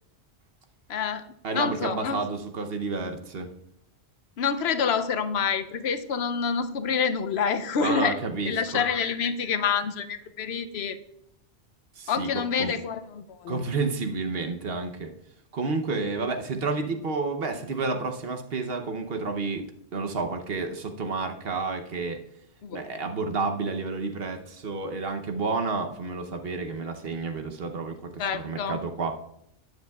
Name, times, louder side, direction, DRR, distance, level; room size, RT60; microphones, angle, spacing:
voice 1, 0.9-1.2 1.5-2.2 4.4-11.0 12.1-13.6 22.6-22.8 28.2-28.8, left 6 dB, 75° left, 10 dB, 0.9 m, -27 dB
voice 2, 1.4-3.5 7.8-8.8 12.0-12.3 12.6-12.7 13.5-15.1 15.5-19.6 19.9-22.2 22.7-29.1, right 3 dB, 65° right, 5 dB, 1.1 m, -30 dB
13.0 x 9.2 x 2.3 m, 0.78 s
omnidirectional pair, 1.1 m